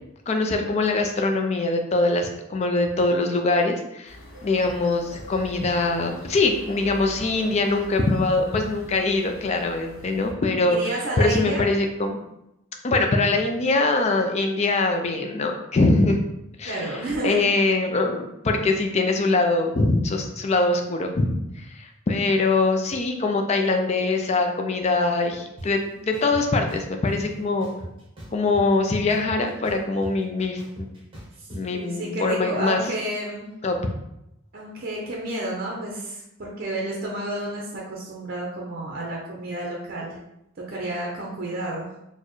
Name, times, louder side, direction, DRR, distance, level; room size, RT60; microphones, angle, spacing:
voice 1, 0.3-4.2 4.4-10.8 11.2-12.2 12.8-16.2 16.6-27.7 28.3-30.9 31.5-32.8 33.6-33.9, left 3 dB, 30° left, 4 dB, 0.4 m, -23 dB
sound 1, 4.1-10.3, left 1 dB, 75° left, 0.8 m, -43 dB
voice 2, 10.6-11.6 16.7-17.4 31.4-31.5 31.7-33.5 34.5-40.2 40.6-41.9, right 1 dB, 45° right, -3 dB, 0.6 m, -30 dB
sound 2, 25.6-25.7 26.1-27.2 27.6-28.8 29.1-31.6, right 1 dB, 25° right, 1.0 m, -39 dB
4.2 x 2.1 x 3.0 m, 0.87 s
head